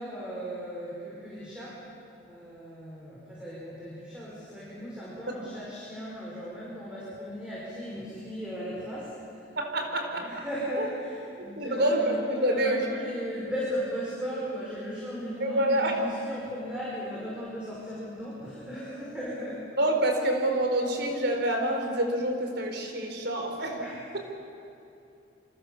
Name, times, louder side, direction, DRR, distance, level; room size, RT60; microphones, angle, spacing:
voice 1, 0.0-1.8 2.3-9.5 9.8-19.7 23.8-23.9, equal, 5° right, -7 dB, 5.9 m, -37 dB
voice 2, 9.6-10.3 10.8-10.9 11.4-12.8 15.4-16.0 19.8-23.8 24.1-24.2, right 1 dB, 60° right, 3 dB, 4.5 m, -27 dB
28.0 x 25.5 x 7.3 m, 2.7 s
head